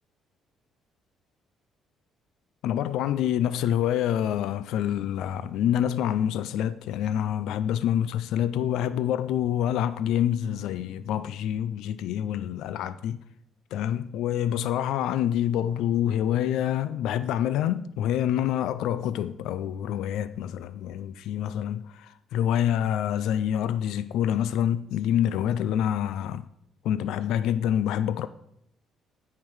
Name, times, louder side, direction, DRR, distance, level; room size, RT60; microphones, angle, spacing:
voice 1, 2.6-13.2 13.7-26.4 26.8-28.3, left 10 dB, 80° left, 0.4 m, -27 dB
13.5 x 5.8 x 4.8 m
cardioid pair, 165°, 0 cm